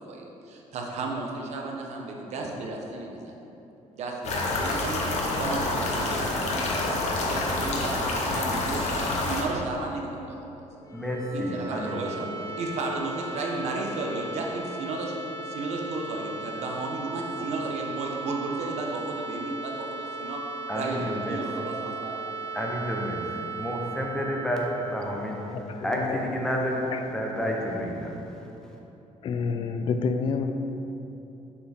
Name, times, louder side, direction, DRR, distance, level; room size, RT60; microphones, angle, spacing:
voice 1, 0.0-3.4 4.0-10.7 11.3-12.3 12.6-15.1 15.4-20.4 20.7-22.3, right 2 dB, 55° right, 0 dB, 0.8 m, -33 dB
sound 1, 4.2-9.4, left 2 dB, 60° left, 0.8 m, -27 dB
sound 2, 10.7-26.5, right 3 dB, 25° left, 1.0 m, -37 dB
voice 2, 10.9-12.0 20.7-21.4 22.5-23.2 23.6-28.8, equal, 5° left, -2 dB, 0.7 m, -30 dB
voice 3, 25.5-26.2 26.9-27.0 27.4-27.5 29.2-30.5, left 5 dB, 40° left, 7 dB, 0.4 m, -29 dB
6.6 x 4.8 x 3.4 m, 3.0 s
cardioid pair, 160°, 13 cm